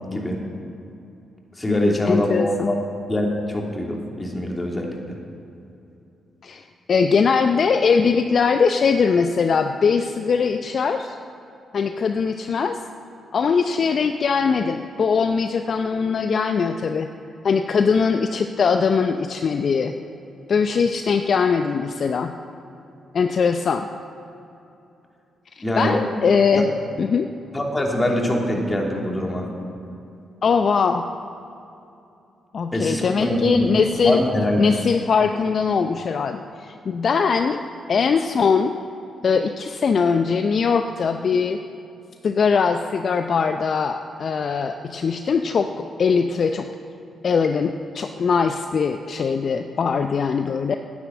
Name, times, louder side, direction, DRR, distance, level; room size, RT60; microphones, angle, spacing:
voice 1, 0.1-0.4 1.6-2.7 3.1-5.0 25.6-26.0 26.5-26.6 27.5-29.5 32.7-33.7 34.0-34.6, left 1 dB, 25° left, 0 dB, 2.9 m, -23 dB
voice 2, 1.7-2.7 6.4-11.2 11.7-12.8 13.3-17.1 17.4-19.9 20.5-22.3 23.1-23.9 25.6-26.7 27.0-27.3 30.4-31.0 32.5-34.2 34.6-37.6 37.9-38.7 39.2-41.6 42.2-46.7 47.2-50.7, left 5 dB, 55° left, 7 dB, 0.5 m, -21 dB
10.5 x 10.0 x 7.5 m, 2.8 s
hypercardioid pair, 40°, 0 cm